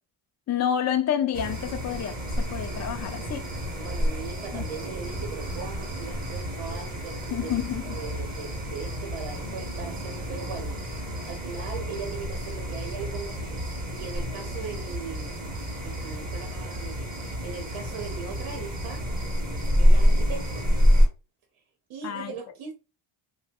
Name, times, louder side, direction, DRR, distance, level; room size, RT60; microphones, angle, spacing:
voice 1, 0.5-3.5 4.5-4.6 7.3-7.9 22.0-22.3, left 9 dB, 35° left, 0.4 m, -29 dB
sound 1, 1.3-21.1, equal, 20° right, 0.8 m, -28 dB
voice 2, 3.8-7.6 7.9-10.8 11.2-15.3 15.8-19.1 19.8-20.7 21.9-22.7, right 6 dB, 80° right, 0.8 m, -39 dB
2.9 x 2.2 x 3.4 m
cardioid pair, 145°, 49 cm